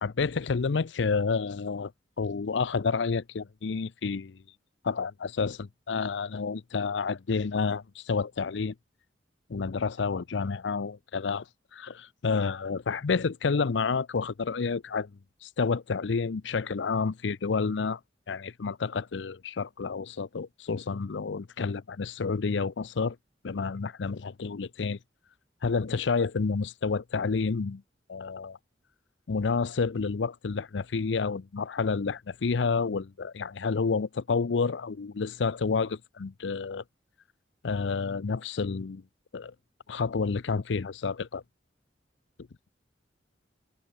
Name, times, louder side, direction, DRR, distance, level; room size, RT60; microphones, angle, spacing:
voice 1, 0.0-1.9 2.2-4.4 4.8-8.7 9.5-11.4 11.7-15.1 15.4-18.0 18.3-23.2 23.4-25.0 25.6-27.8 28.1-28.6 29.3-36.8 37.6-39.0 39.3-39.5 39.9-41.4, left 4 dB, 75° left, 0.6 m, -29 dB
head